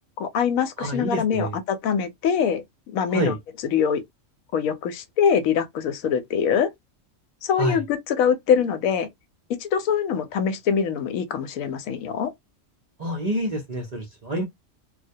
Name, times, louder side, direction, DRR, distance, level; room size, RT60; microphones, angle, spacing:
voice 1, 0.2-2.6 2.9-3.3 3.7-4.0 4.5-6.7 7.4-9.1 9.5-12.3, left 7 dB, 90° left, 1.0 m, -23 dB
voice 2, 0.8-1.6 3.1-3.4 7.6-7.8 13.0-14.4, right 1 dB, 45° right, 0.5 m, -27 dB
2.2 x 2.1 x 2.6 m
omnidirectional pair, 1.4 m